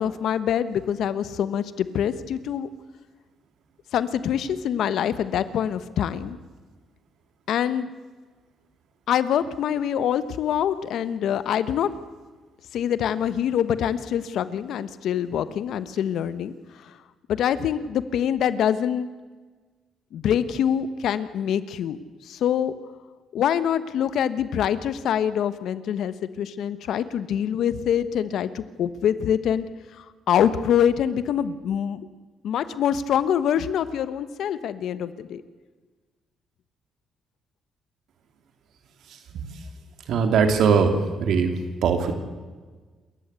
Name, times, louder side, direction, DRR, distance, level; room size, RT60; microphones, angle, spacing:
voice 1, 0.0-2.7 3.9-6.4 7.5-7.9 9.1-11.9 12.7-16.9 17.3-19.1 20.1-22.0 22.2-22.7 23.3-29.7 29.9-32.1 32.4-35.4, left 9 dB, 75° left, 14 dB, 1.2 m, -25 dB
voice 2, 39.1-39.7 40.0-42.1, right 5 dB, 75° right, 7 dB, 3.0 m, -22 dB
27.5 x 13.5 x 8.2 m, 1.4 s
cardioid pair, 90°, 0 cm